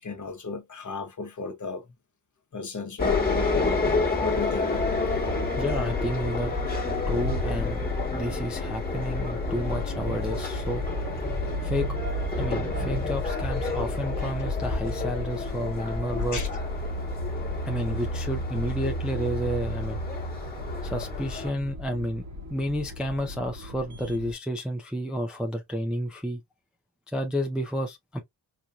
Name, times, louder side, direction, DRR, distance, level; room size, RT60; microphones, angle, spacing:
voice 1, 0.0-1.8 2.5-3.2 4.2-4.8 16.3-16.5, left 4 dB, 40° left, 1.1 m, -35 dB
sound 1, 3.0-21.5, left 4 dB, 20° left, 1.5 m, -30 dB
sound 2, 4.7-24.3, right 1 dB, 35° right, 1.2 m, -35 dB
voice 2, 5.6-6.5 7.1-7.9 8.1-10.8 11.6-11.9 12.4-16.4 17.7-20.0 20.8-22.2 22.5-26.4 27.1-28.2, equal, ahead, 0.5 m, -30 dB
4.6 x 2.7 x 2.3 m
wide cardioid pair, 120°, 47 cm